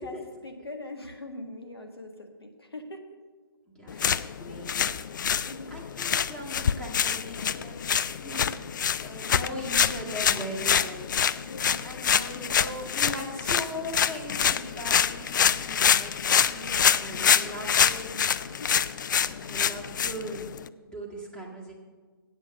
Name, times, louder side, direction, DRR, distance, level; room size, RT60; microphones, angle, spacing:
voice 1, 0.0-3.2 3.9-4.4 5.4-5.7 11.3-12.5 16.4-18.7, left 2 dB, 85° left, 4 dB, 1.5 m, -43 dB
voice 2, 3.8-4.1 4.4-5.0 5.7-8.6 9.0-11.1 11.8-16.1 17.0-18.0 19.1-20.5 20.8-21.7, equal, 5° left, -4 dB, 1.8 m, -39 dB
sound 1, 3.9-20.7, left 8 dB, 50° left, 0.4 m, -26 dB
8.3 x 8.1 x 6.4 m, 1.4 s
figure-of-eight pair, 135°, 13 cm